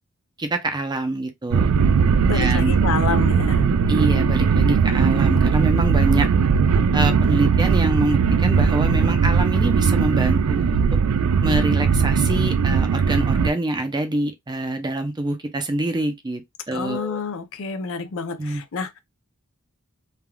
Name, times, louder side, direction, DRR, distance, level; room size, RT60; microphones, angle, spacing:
voice 1, 0.4-1.7 2.3-2.7 3.9-6.3 6.9-10.8 11.4-16.4 16.7-17.2 18.4-18.6, right 2 dB, 20° right, 0.5 m, -25 dB
sound 1, 1.5-13.5, right 6 dB, 75° right, 0.3 m, -19 dB
voice 2, 2.3-3.7 16.7-19.0, left 5 dB, 65° left, 0.5 m, -28 dB
3.3 x 2.3 x 2.2 m
head